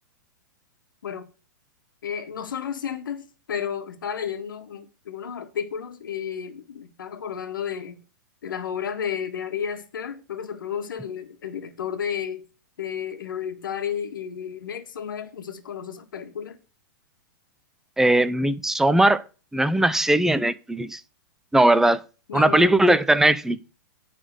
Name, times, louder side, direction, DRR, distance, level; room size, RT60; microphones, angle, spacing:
voice 1, 2.0-8.0 8.4-12.5 12.8-16.6 19.9-20.0 22.3-22.8, left 8 dB, 80° left, 1.8 m, -32 dB
voice 2, 18.0-19.2 19.5-21.0 21.5-22.0 22.3-23.6, right 1 dB, 5° right, 0.5 m, -19 dB
10.0 x 4.1 x 7.7 m
hypercardioid pair, 140°, 11 cm